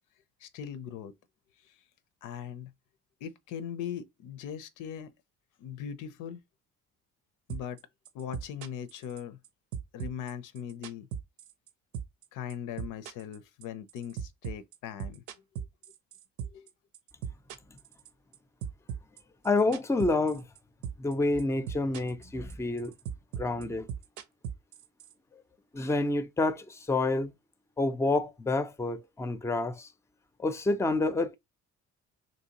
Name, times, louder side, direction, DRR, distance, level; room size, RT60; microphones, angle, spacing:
voice 1, 0.4-1.2 2.2-2.7 3.2-5.1 5.6-6.4 7.5-7.8 8.1-9.4 9.9-11.1 12.3-15.2 15.6-15.7 16.4-16.7, left 9 dB, 90° left, 0.6 m, -40 dB
sound 1, 7.5-7.8 8.1-9.5 9.7-11.7 11.9-12.2 12.5-16.7 16.9-18.4 18.6-20.6 20.8-21.1 21.4-22.2 22.5-25.1, right 8 dB, 85° right, 0.7 m, -38 dB
voice 2, 19.4-20.4 21.0-22.9 23.4-23.9 25.7-27.3 27.8-29.9 30.4-31.4, left 2 dB, 10° left, 0.4 m, -28 dB
3.1 x 2.7 x 2.8 m
cardioid pair, 90°, 30 cm